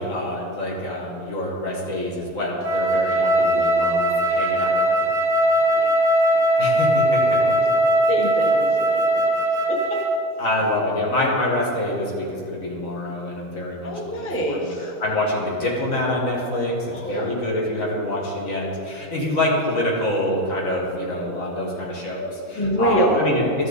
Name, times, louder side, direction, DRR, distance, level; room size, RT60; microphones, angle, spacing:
voice 1, 0.0-5.0 6.6-7.2 10.4-13.9 14.2-16.7 17.0-23.7, left 1 dB, 60° left, -3 dB, 2.0 m, -26 dB
Wind instrument woodwind instrument, 2.6-10.3, right 1 dB, 40° right, 0.5 m, -20 dB
voice 2, 5.5-6.0 6.3-6.8 7.1-7.8 8.1-10.1 13.8-14.9 16.9-17.4 22.1-23.5, right 1 dB, 10° left, -1 dB, 0.8 m, -27 dB
13.0 x 6.2 x 4.0 m, 2.7 s
omnidirectional pair, 1.6 m